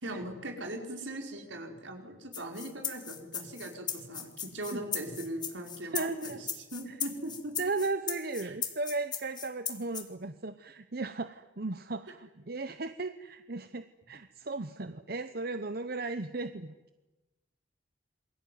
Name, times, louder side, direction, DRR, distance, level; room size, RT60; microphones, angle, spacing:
voice 1, 0.0-7.5 8.4-8.5, right 1 dB, 75° right, 3 dB, 5.1 m, -40 dB
sound 1, 2.3-10.0, left 7 dB, 20° left, 2.3 m, -37 dB
voice 2, 5.9-6.4 6.9-7.0 7.6-16.7, right 3 dB, 50° right, 10 dB, 1.0 m, -36 dB
27.5 x 22.5 x 9.5 m, 1.1 s
head